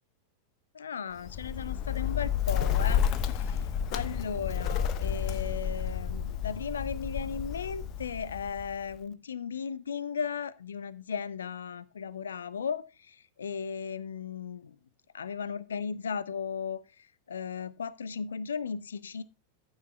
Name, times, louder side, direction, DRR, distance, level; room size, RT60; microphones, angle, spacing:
voice 1, 0.7-3.6 3.9-14.8 15.1-19.2, left 6 dB, 70° left, 19 dB, 0.7 m, -36 dB
Bird, 1.2-9.0, left 8 dB, 40° left, 1.0 m, -31 dB
14.0 x 8.9 x 2.2 m, 0.29 s
figure-of-eight pair, 90°, 0 cm